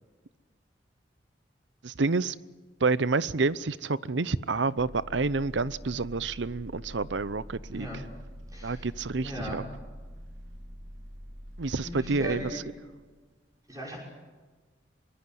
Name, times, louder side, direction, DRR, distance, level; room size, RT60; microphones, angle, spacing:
voice 1, 1.8-2.4 2.8-8.1 8.6-9.6 11.6-12.6, right 3 dB, 80° right, 0.7 m, -28 dB
sound 1, 4.8-12.5, equal, 35° right, 4.0 m, -45 dB
voice 2, 8.5-8.8 9.2-9.6 11.8-12.6 13.7-14.0, equal, 20° right, 5.9 m, -38 dB
24.5 x 21.5 x 7.8 m
head